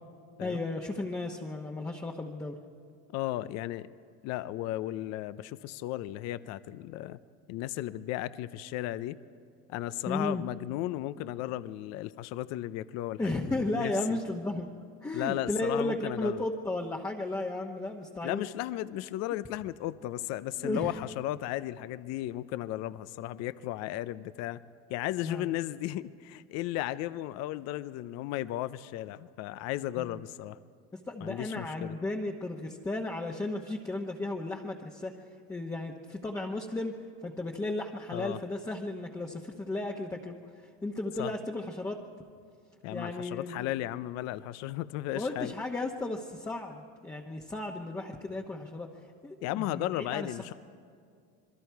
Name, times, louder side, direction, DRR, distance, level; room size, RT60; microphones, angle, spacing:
voice 1, 0.4-2.6 10.1-10.4 13.2-14.7 15.0-18.5 20.6-20.9 25.2-25.5 30.0-30.2 31.1-35.2 35.5-37.0 37.2-40.4 40.8-42.0 42.9-43.7 45.1-48.9 49.2-50.3, left 2 dB, 10° left, -1 dB, 1.1 m, -34 dB
voice 2, 3.1-3.9 4.2-7.2 7.5-9.2 9.7-14.2 15.1-16.5 18.2-24.6 24.9-30.6 31.2-32.0 38.1-38.4 41.2-41.3 42.8-45.5 49.4-50.5, left 14 dB, 60° left, 15 dB, 0.6 m, -35 dB
27.0 x 21.5 x 4.7 m, 2.2 s
supercardioid pair, 120°, 29 cm